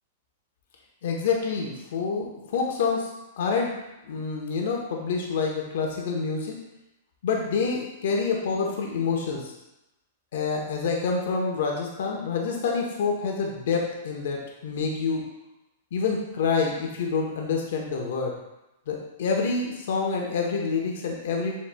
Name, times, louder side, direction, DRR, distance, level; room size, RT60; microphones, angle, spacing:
voice 1, 1.0-6.6 7.2-9.5 10.3-15.4 15.9-18.4 18.9-21.5, left 5 dB, 70° left, 0 dB, 0.9 m, -27 dB
7.3 x 3.0 x 2.2 m, 0.92 s
hypercardioid pair, 140°, 0 cm